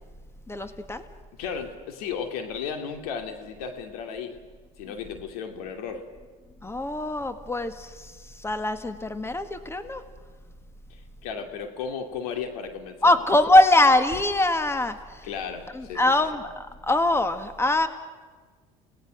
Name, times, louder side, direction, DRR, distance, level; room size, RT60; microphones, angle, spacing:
voice 1, 0.5-1.0 6.6-8.1 8.4-10.0 13.0-15.0 15.7-17.9, left 2 dB, 15° left, 10 dB, 1.8 m, -22 dB
voice 2, 1.3-4.4 4.8-6.0 10.9-13.1 15.2-16.3, left 6 dB, 85° left, 6 dB, 2.5 m, -34 dB
29.5 x 18.5 x 6.4 m, 1.4 s
supercardioid pair, 80°, 19 cm